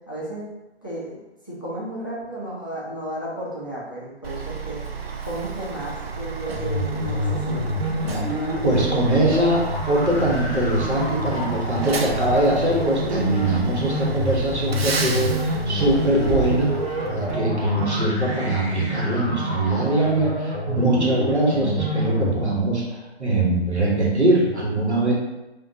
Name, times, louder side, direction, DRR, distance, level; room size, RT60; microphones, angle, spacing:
voice 1, 0.1-0.4 0.8-1.2 1.5-4.8 5.2-7.6 8.0-8.3 15.1-15.7, right 1 dB, 20° left, -8 dB, 0.4 m, -33 dB
Truck, 4.2-17.4, right 5 dB, 60° right, 0.5 m, -32 dB
sound 1, 6.5-22.5, left 1 dB, 30° right, 0.8 m, -27 dB
voice 2, 8.6-9.6 9.9-16.7 17.1-25.1, right 1 dB, 80° right, -4 dB, 1.3 m, -22 dB
3.6 x 2.5 x 2.8 m, 1.0 s
figure-of-eight pair, 140°, 33 cm